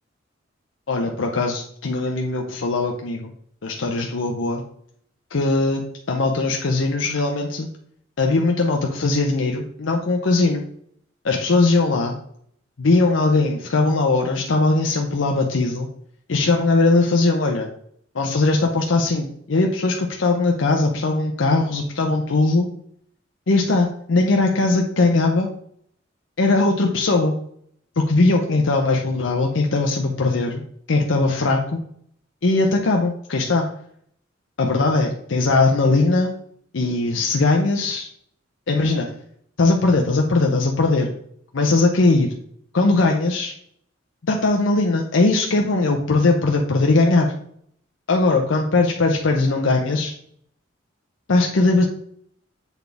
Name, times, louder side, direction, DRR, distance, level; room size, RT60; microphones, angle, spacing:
voice 1, 0.9-3.3 3.6-4.6 5.3-7.7 8.2-10.6 11.2-12.2 12.8-15.9 16.3-17.7 18.1-22.7 23.5-25.5 26.4-27.3 28.0-30.6 30.9-31.8 32.4-33.7 34.6-36.4 36.7-38.1 38.7-39.1 39.6-41.2 41.5-42.3 42.7-43.5 44.2-47.3 48.1-50.1 51.3-51.8, left 3 dB, 75° left, 2 dB, 0.7 m, -20 dB
8.1 x 4.1 x 3.4 m, 0.66 s
head